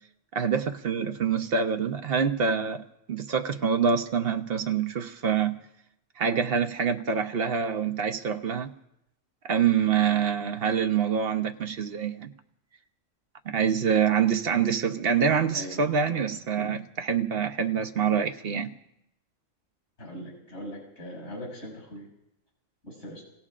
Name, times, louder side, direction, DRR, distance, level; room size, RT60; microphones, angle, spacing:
voice 1, 0.3-5.6 6.2-8.7 9.4-12.3 13.4-18.7, right 7 dB, 50° right, 1.0 m, -26 dB
voice 2, 20.0-22.1 22.8-23.2, equal, 70° left, 6.6 m, -40 dB
29.5 x 18.0 x 2.5 m
omnidirectional pair, 1.3 m